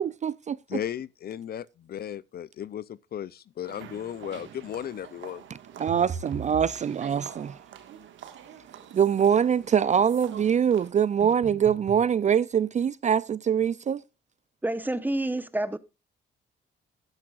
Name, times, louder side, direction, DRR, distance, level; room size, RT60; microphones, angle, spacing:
voice 1, 0.0-0.8 5.8-7.6 8.9-14.0, right 8 dB, 35° right, 0.4 m, -24 dB
voice 2, 0.7-5.4, left 10 dB, 50° left, 0.5 m, -35 dB
sound 1, 3.6-10.9, right 9 dB, 75° right, 1.7 m, -46 dB
sound 2, 5.9-6.8 11.2-12.1, right 5 dB, 60° right, 2.3 m, -38 dB
voice 3, 14.6-15.8, right 1 dB, 10° right, 1.0 m, -28 dB
12.5 x 10.5 x 2.4 m
cardioid pair, 90°, 20 cm